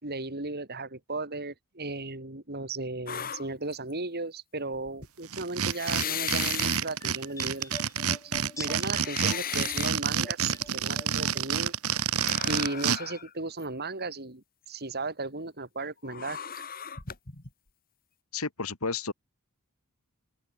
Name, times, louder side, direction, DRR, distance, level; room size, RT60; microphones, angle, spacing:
voice 1, 0.0-7.8 8.2-11.7 12.5-16.6, right 3 dB, 45° right, 3.6 m, -36 dB
sound 1, 3.1-3.9 4.7-5.1 5.7-6.8 7.6-7.7 8.1-9.9 10.5-10.8 12.1-13.3 13.6-13.7 16.0-17.5, left 8 dB, 40° left, 2.9 m, -37 dB
sound 2, 5.3-13.0, right 7 dB, 75° right, 1.6 m, -28 dB
sound 3, 6.9-11.6 11.9-12.9 13.1-13.2, left 3 dB, 15° left, 2.4 m, -47 dB
voice 2, 18.3-19.1, left 4 dB, 75° left, 2.5 m, -32 dB
open air
head